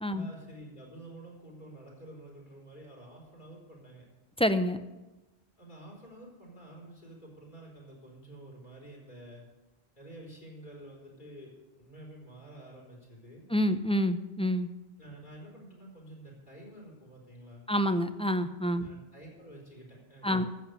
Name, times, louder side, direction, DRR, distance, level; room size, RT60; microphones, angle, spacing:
voice 1, 0.1-4.0 5.6-9.4 9.9-13.4 15.0-17.7 18.8-20.5, right 1 dB, 45° left, -2 dB, 4.7 m, -49 dB
voice 2, 4.4-4.8 13.5-14.7 17.7-18.9 20.2-20.4, equal, 5° left, 10 dB, 0.5 m, -27 dB
13.5 x 8.0 x 8.3 m, 1.1 s
omnidirectional pair, 1.1 m